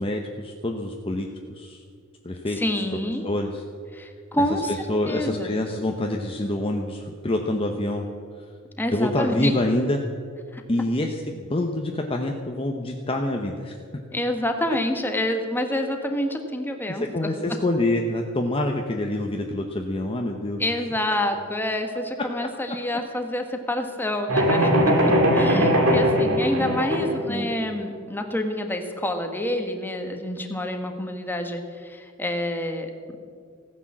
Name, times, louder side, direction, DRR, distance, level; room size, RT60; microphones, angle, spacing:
voice 1, 0.0-1.8 2.2-2.8 3.2-3.6 4.7-8.1 8.4-8.5 8.9-10.0 10.7-13.7 16.9-20.6 27.3-27.5, left 1 dB, 25° left, 2 dB, 0.9 m, -26 dB
voice 2, 2.6-3.3 3.9-4.7 5.1-5.5 8.8-9.5 10.5-10.6 14.1-17.3 20.6-24.9 25.3-32.9, left 1 dB, 10° left, 4 dB, 1.4 m, -27 dB
sound 1, 24.3-27.2, equal, 90° right, 2.7 m, -20 dB
16.0 x 9.9 x 7.4 m, 2.2 s
head